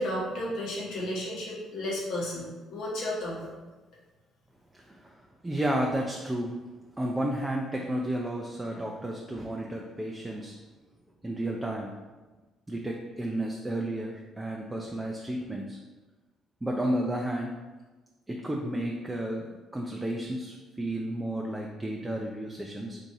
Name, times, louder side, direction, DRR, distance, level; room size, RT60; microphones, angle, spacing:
voice 1, 0.0-3.6, left 1 dB, 70° left, -4 dB, 1.0 m, -33 dB
voice 2, 4.7-5.1 5.4-6.6 7.0-10.6 11.2-12.0 12.7-15.8 16.6-17.6 18.3-23.0, right 1 dB, 15° right, 0 dB, 0.4 m, -32 dB
2.8 x 2.7 x 3.6 m, 1.2 s
hypercardioid pair, 55°, 0 cm